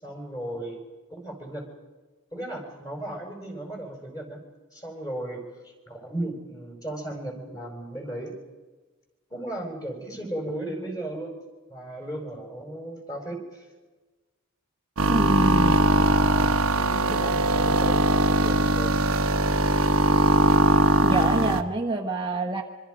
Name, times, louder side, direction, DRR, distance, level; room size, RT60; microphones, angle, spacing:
voice 1, 0.0-0.8 1.1-1.7 2.3-4.4 4.7-8.3 9.3-11.3 11.7-13.7 15.6-19.0, right 1 dB, 20° left, 2 dB, 5.0 m, -36 dB
sound 1, 15.0-21.6, right 2 dB, 85° right, 1.1 m, -21 dB
voice 2, 15.1-15.8 21.0-22.6, right 2 dB, 25° right, 2 dB, 1.1 m, -26 dB
25.5 x 24.0 x 5.2 m, 1.2 s
head